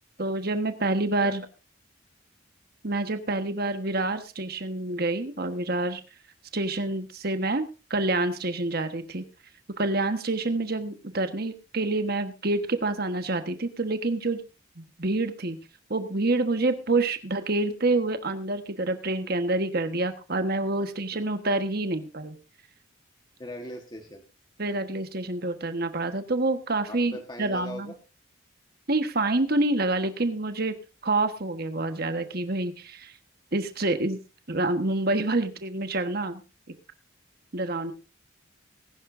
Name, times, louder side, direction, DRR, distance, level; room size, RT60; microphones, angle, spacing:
voice 1, 0.2-1.5 2.8-6.0 6.5-7.6 7.9-9.2 9.8-14.4 14.8-15.6 15.9-22.3 24.6-27.9 28.9-30.7 31.0-33.1 33.5-34.2 34.5-36.4 37.5-37.9, right 2 dB, 50° right, 8 dB, 1.3 m, -27 dB
voice 2, 23.4-24.2 26.9-27.9, equal, 20° left, 3 dB, 1.4 m, -39 dB
20.5 x 11.0 x 2.6 m, 0.31 s
head